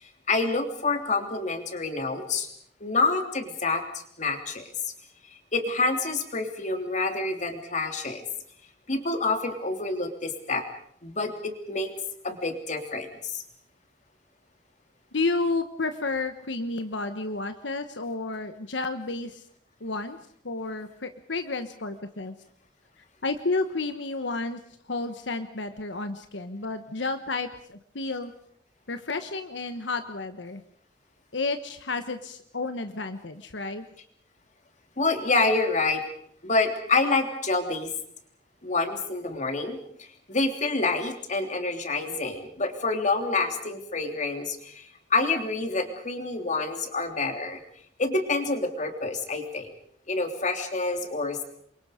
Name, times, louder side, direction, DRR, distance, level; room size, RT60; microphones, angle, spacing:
voice 1, 0.0-2.5 2.8-4.6 5.3-8.2 8.9-10.6 11.0-11.9 12.2-13.4 35.0-36.0 36.4-37.9 38.6-47.6 48.0-49.7 50.1-51.4, left 3 dB, 45° left, 5 dB, 3.3 m, -27 dB
voice 2, 15.1-19.4 19.8-20.2 20.4-22.3 23.2-24.6 24.9-28.3 28.9-30.6 31.3-33.9, left 3 dB, 85° left, 8 dB, 1.3 m, -31 dB
29.0 x 23.5 x 5.1 m, 0.65 s
head